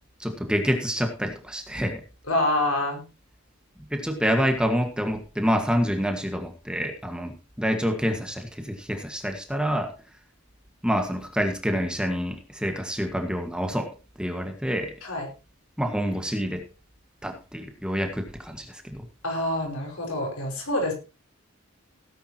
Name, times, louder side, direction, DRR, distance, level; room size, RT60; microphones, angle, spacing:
voice 1, 0.2-2.0 3.9-9.9 10.8-13.9 14.2-14.9 15.8-16.6 17.2-19.0, equal, 5° right, 5 dB, 1.6 m, -27 dB
voice 2, 2.3-3.0 15.0-15.3 19.2-20.9, left 1 dB, 80° left, 1 dB, 5.5 m, -26 dB
17.5 x 10.5 x 3.0 m, 0.30 s
head